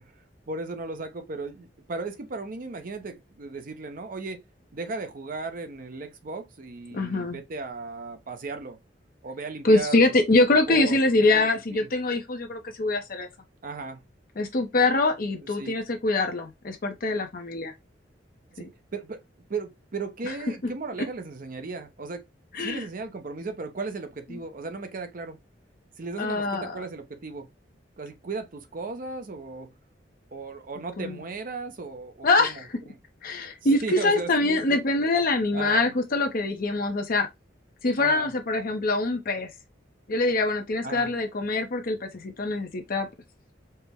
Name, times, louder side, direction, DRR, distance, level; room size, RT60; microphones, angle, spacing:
voice 1, 0.5-4.4 4.7-8.8 9.2-11.9 13.6-14.0 15.4-15.8 18.6-19.2 19.5-22.2 22.6-25.4 26.0-27.5 28.0-29.7 30.3-33.0 33.8-34.8 35.5-36.0 38.0-38.3 40.8-41.1, right 3 dB, 50° right, 0.6 m, -36 dB
voice 2, 6.9-7.4 9.6-13.3 14.4-17.7 18.6-18.7 22.5-22.8 26.2-26.8 31.0-31.2 32.2-32.5 33.2-37.3 37.8-39.5 40.1-43.1, left 2 dB, 50° left, 0.6 m, -24 dB
4.4 x 2.1 x 3.4 m
head